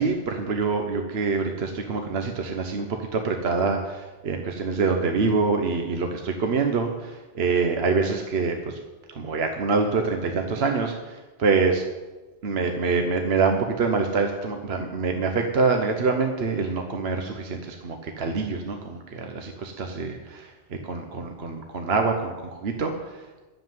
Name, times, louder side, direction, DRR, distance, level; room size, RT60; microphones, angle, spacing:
voice 1, 0.0-8.8 9.1-11.8 12.4-23.5, right 4 dB, 70° right, 4 dB, 1.2 m, -25 dB
10.5 x 7.5 x 9.3 m, 1.2 s
omnidirectional pair, 1.1 m